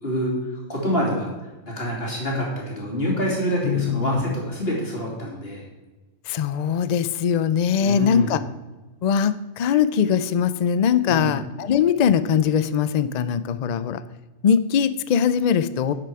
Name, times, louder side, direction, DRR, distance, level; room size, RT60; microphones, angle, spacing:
voice 1, 0.0-1.3 1.7-5.6 7.8-8.4 11.0-11.4, equal, 50° left, -3 dB, 3.2 m, -26 dB
voice 2, 3.6-4.4 6.3-8.4 9.0-14.0 14.4-15.9, left 7 dB, 75° left, 13 dB, 0.3 m, -21 dB
11.0 x 7.6 x 4.8 m, 1.2 s
omnidirectional pair, 1.3 m